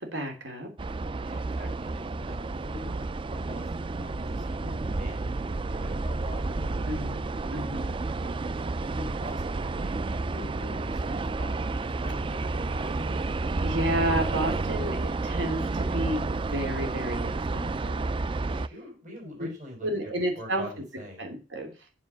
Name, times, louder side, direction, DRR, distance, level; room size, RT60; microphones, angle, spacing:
voice 1, 0.1-0.7 6.9-8.0 13.6-18.1 18.4-18.7 19.8-20.7 21.2-21.7, right 1 dB, 75° right, 4 dB, 3.2 m, -31 dB
sound 1, 0.8-18.7, right 3 dB, 30° right, 0.4 m, -31 dB
voice 2, 1.2-5.3 5.7-7.1 8.1-8.4 8.8-13.3 18.4-21.3, left 1 dB, 45° right, 0 dB, 5.3 m, -44 dB
7.6 x 7.0 x 6.9 m, 0.34 s
head